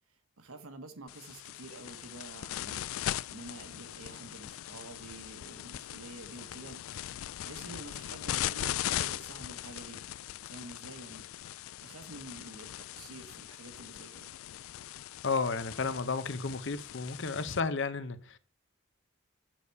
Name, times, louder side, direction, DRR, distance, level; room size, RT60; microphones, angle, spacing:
voice 1, 0.1-10.1 10.5-14.3, right 2 dB, 80° right, 1.3 m, -49 dB
sound 1, 1.1-17.6, left 12 dB, 70° left, 0.3 m, -40 dB
voice 2, 15.2-18.4, left 4 dB, 55° left, 0.7 m, -32 dB
7.5 x 6.7 x 4.7 m
head